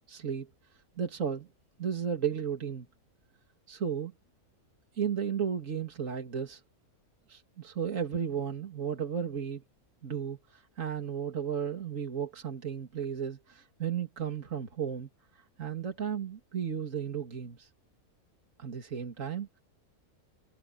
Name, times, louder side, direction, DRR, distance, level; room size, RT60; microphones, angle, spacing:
voice 1, 0.1-0.5 1.0-1.5 1.8-2.9 3.7-4.1 5.0-6.6 7.3-9.6 10.0-15.1 15.6-17.7 18.6-19.5, right 7 dB, 60° right, 2.7 m, -34 dB
omnidirectional pair, 1.5 m